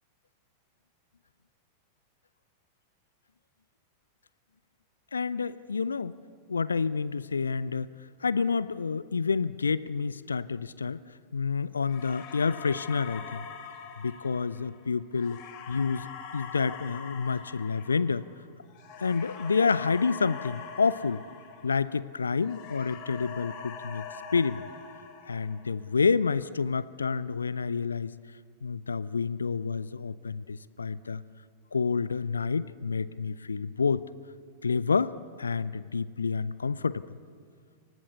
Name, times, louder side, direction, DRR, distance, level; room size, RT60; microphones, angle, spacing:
voice 1, 5.1-6.1 6.5-7.9 8.2-11.0 11.3-13.4 14.0-15.4 15.7-18.2 19.0-21.2 21.6-24.1 24.3-24.6 25.3-28.1 28.6-31.2 31.7-34.0 34.6-37.0, left 5 dB, 75° left, 18 dB, 0.6 m, -29 dB
sound 1, 11.9-22.1 22.4-25.8, left 6 dB, 45° left, 4.4 m, -43 dB
30.0 x 23.5 x 7.0 m, 2.2 s
figure-of-eight pair, 90°, 0 cm